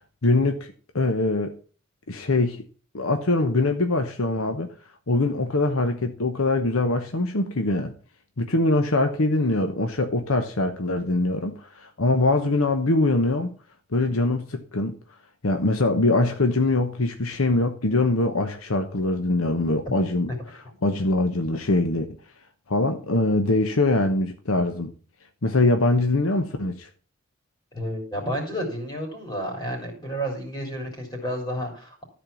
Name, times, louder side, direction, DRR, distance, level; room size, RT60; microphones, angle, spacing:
voice 1, 0.2-1.5 2.1-2.6 2.9-4.7 5.1-7.9 8.4-13.5 13.9-15.0 15.4-20.3 20.8-22.1 22.7-24.9 25.4-26.9, left 2 dB, 90° left, 1.1 m, -23 dB
voice 2, 27.7-32.0, equal, 20° left, 3.9 m, -31 dB
13.5 x 4.5 x 7.0 m
head